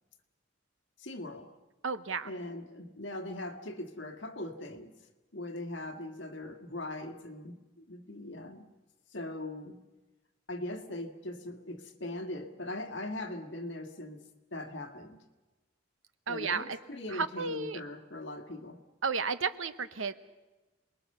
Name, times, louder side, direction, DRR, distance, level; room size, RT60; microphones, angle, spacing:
voice 1, 1.0-1.5 2.2-4.9 5.3-8.6 9.1-9.8 10.5-14.2 14.5-15.2 16.3-18.8, left 1 dB, 65° left, 6 dB, 1.8 m, -40 dB
voice 2, 1.8-2.3 16.3-16.8 17.1-17.8 19.0-20.1, right 5 dB, 85° right, 12 dB, 1.0 m, -33 dB
27.5 x 20.5 x 6.7 m, 1.2 s
head